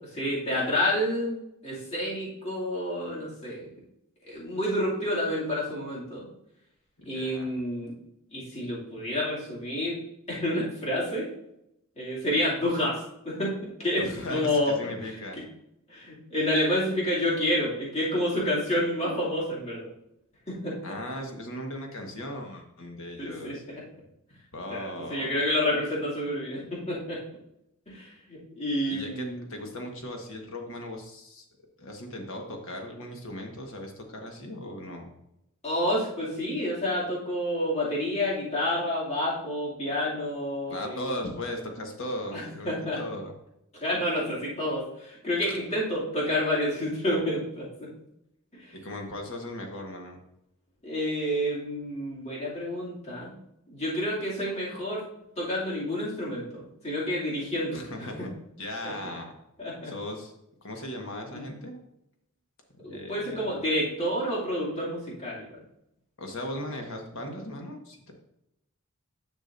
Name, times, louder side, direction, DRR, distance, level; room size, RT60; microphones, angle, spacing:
voice 1, 0.0-3.7 4.2-6.2 7.0-7.9 8.3-10.0 10.3-11.3 12.0-13.5 13.8-14.0 14.3-14.8 15.1-15.4 15.9-19.9 20.5-20.7 23.2-23.7 24.7-27.2 27.9-29.4 35.6-41.1 42.3-43.0 43.8-47.7 48.5-48.8 50.8-53.3 53.7-55.0 55.4-58.1 58.8-58.9 59.6-59.9 62.8-65.6, left 1 dB, 30° left, -7 dB, 2.5 m, -29 dB
voice 2, 7.1-7.5 14.0-15.4 20.8-23.6 23.9-24.0 24.5-25.3 28.9-31.4 31.8-35.1 40.7-43.3 45.4-45.6 48.8-50.2 57.7-58.3 58.6-59.3 59.8-60.3 60.6-61.8 62.9-63.5 66.2-68.1, left 1 dB, 65° left, 2 dB, 1.4 m, -37 dB
9.9 x 6.2 x 2.6 m, 0.82 s
head